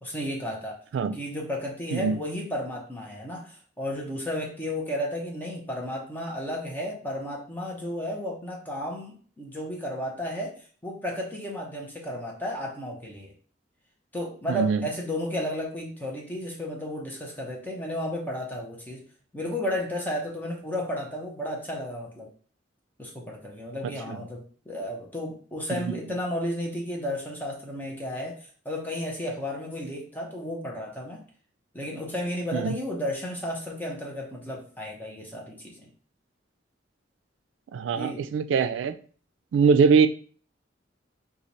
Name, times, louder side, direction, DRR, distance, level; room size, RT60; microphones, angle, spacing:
voice 1, 0.0-0.8 1.1-13.3 14.1-19.0 19.3-22.3 23.0-31.2 31.7-35.9 37.9-38.3, left 1 dB, 10° left, -1 dB, 0.7 m, -33 dB
voice 2, 14.5-14.8 24.1-24.2 25.7-25.9 32.5-32.8 37.7-38.9 39.5-40.1, right 5 dB, 85° right, 10 dB, 0.3 m, -22 dB
3.1 x 2.4 x 4.0 m, 0.43 s
head